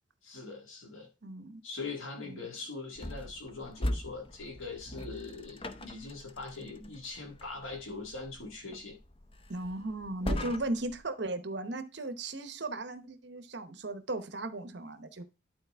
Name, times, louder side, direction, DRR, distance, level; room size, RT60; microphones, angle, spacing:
voice 1, 0.2-1.1 1.6-9.0, left 3 dB, 85° left, 0 dB, 1.8 m, -42 dB
voice 2, 1.2-1.6 2.2-2.4 9.5-15.2, right 2 dB, 55° right, 9 dB, 0.9 m, -36 dB
sound 1, 3.0-11.0, left 1 dB, 25° left, 0.6 m, -40 dB
11.5 x 4.2 x 3.4 m, 0.30 s
head